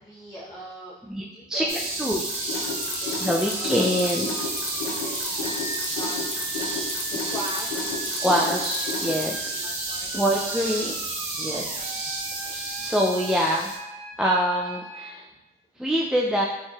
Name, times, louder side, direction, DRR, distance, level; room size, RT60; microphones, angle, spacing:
voice 1, 0.0-1.9 2.5-3.2 3.5-3.9 4.5-6.3 7.1-8.4 8.7-9.0 9.4-10.4 10.7-10.9 12.8-12.9, right 1 dB, 20° left, -8 dB, 0.8 m, -41 dB
voice 2, 1.1-1.7 2.0-2.2 3.2-4.3 8.0-9.4 10.2-10.9 11.4-11.7 12.4-13.7 14.2-15.3 15.8-16.5, equal, 5° right, -2 dB, 0.3 m, -25 dB
sound 1, 1.7-13.8, right 2 dB, 85° right, 1.0 m, -31 dB
Mechanisms, 2.1-9.5, left 4 dB, 90° left, 0.6 m, -33 dB
sound 2, 2.3-15.1, right 2 dB, 20° right, 1.0 m, -40 dB
4.4 x 3.1 x 2.3 m, 1.1 s
cardioid pair, 90°, 20 cm